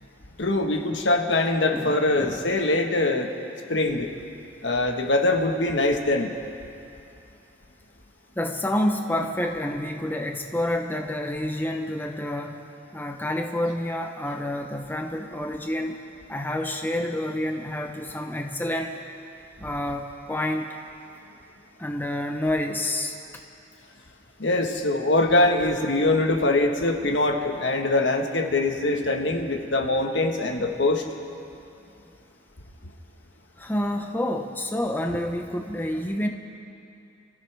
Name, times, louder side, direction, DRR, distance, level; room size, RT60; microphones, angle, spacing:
voice 1, 0.4-3.3 3.7-4.1 4.6-6.3 24.4-31.0, left 2 dB, 70° left, 4 dB, 1.3 m, -23 dB
voice 2, 1.7-2.5 8.3-12.6 12.9-16.0 16.3-19.0 19.6-20.8 21.8-23.2 33.6-36.3, left 1 dB, 10° left, 3 dB, 0.7 m, -28 dB
28.5 x 14.5 x 3.4 m, 2.6 s
head